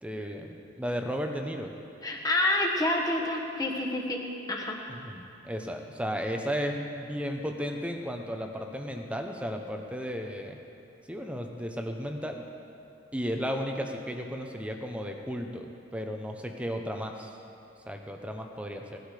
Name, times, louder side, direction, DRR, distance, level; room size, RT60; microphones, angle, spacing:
voice 1, 0.0-1.7 4.9-10.6 11.1-12.4 13.1-17.3 17.9-19.0, equal, 5° right, 3 dB, 0.9 m, -34 dB
voice 2, 2.0-4.2 4.5-4.8, left 1 dB, 20° left, -1 dB, 1.4 m, -28 dB
17.5 x 12.0 x 5.0 m, 2.7 s
head